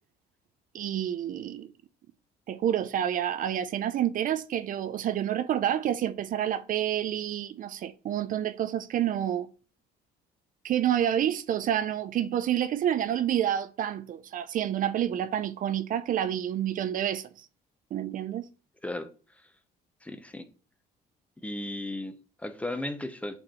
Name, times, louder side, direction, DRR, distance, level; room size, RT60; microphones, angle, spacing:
voice 1, 0.7-1.7 2.5-9.5 10.6-17.5 17.9-18.5, right 10 dB, 55° right, 0.5 m, -28 dB
voice 2, 18.8-19.5 20.0-20.5 21.4-23.4, left 1 dB, 10° left, 0.9 m, -36 dB
7.8 x 4.4 x 4.4 m
cardioid pair, 110°, 17 cm